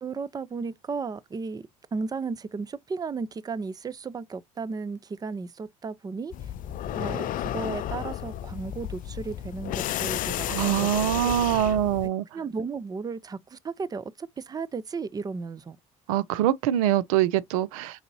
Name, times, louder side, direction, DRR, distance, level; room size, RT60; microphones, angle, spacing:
voice 1, 0.0-6.3 6.9-10.9 11.2-11.3 12.3-15.8, right 4 dB, 20° right, 0.5 m, -34 dB
sound 1, 6.3-12.1, left 12 dB, 50° left, 0.4 m, -32 dB
voice 2, 10.5-12.2 16.1-18.0, right 12 dB, 75° right, 0.4 m, -24 dB
4.7 x 3.7 x 2.7 m
hypercardioid pair, 65°, 18 cm